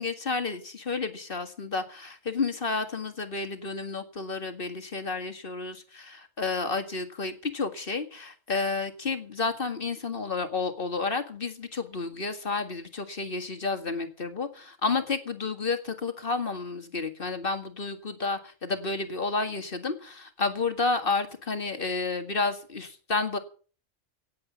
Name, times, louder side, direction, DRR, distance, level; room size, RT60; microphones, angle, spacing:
voice 1, 0.0-23.4, left 4 dB, 45° left, 7 dB, 2.0 m, -31 dB
17.5 x 8.1 x 7.2 m, 0.40 s
omnidirectional pair, 1.3 m